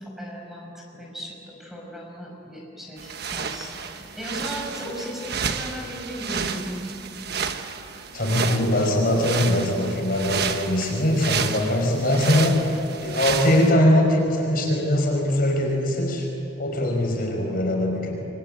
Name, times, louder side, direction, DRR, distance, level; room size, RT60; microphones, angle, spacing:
voice 1, 0.2-6.8, equal, ahead, -1 dB, 5.5 m, -36 dB
sound 1, 3.0-13.7, right 6 dB, 60° right, 1.3 m, -31 dB
voice 2, 8.1-16.3 16.6-18.1, left 1 dB, 50° left, 1 dB, 5.5 m, -22 dB
28.0 x 23.0 x 9.2 m, 2.7 s
head